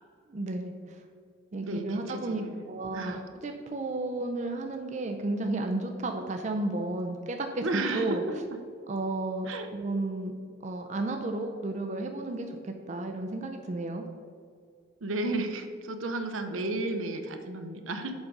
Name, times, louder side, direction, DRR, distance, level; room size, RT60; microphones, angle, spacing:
voice 1, 0.3-1.0 1.5-8.2 8.9-10.3 10.6-14.0, right 2 dB, 35° right, 4 dB, 0.4 m, -33 dB
voice 2, 1.6-2.6 2.9-3.2 7.6-8.3 9.5-9.7 15.0-18.1, right 2 dB, 75° right, 6 dB, 0.7 m, -33 dB
7.1 x 3.8 x 5.3 m, 2.2 s
head